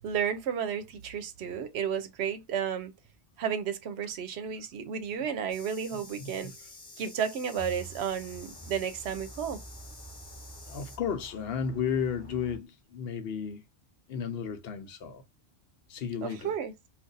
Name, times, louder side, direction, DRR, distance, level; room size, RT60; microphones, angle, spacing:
voice 1, 0.0-2.9 3.4-6.5 7.0-9.6 16.2-16.7, right 7 dB, 70° right, 0.8 m, -32 dB
sound 1, 5.5-11.0, left 3 dB, 50° left, 1.1 m, -50 dB
voice 2, 6.2-6.5 10.7-13.6 14.1-15.2 15.9-16.5, left 7 dB, 65° left, 0.8 m, -33 dB
sound 2, 7.6-12.6, right 3 dB, 10° left, 0.8 m, -48 dB
2.5 x 2.4 x 3.8 m
omnidirectional pair, 1.2 m